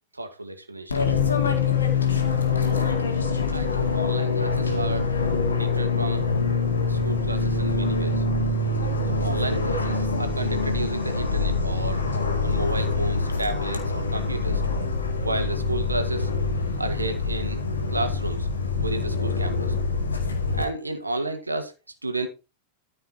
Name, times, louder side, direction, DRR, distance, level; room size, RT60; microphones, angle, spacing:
voice 1, 0.1-1.1 2.6-2.9 3.5-5.1 5.5-6.3 6.9-8.2 9.2-12.0 12.4-14.6 15.2-16.3 16.8-17.6 17.9-18.5 18.7-19.7 20.5-21.7 22.0-22.3, right 2 dB, 80° right, 1.7 m, -32 dB
Fixed-wing aircraft airplane, 0.9-20.6, left 4 dB, 75° left, 2.1 m, -25 dB
13.0 x 5.4 x 4.3 m
figure-of-eight pair, 90°, 0 cm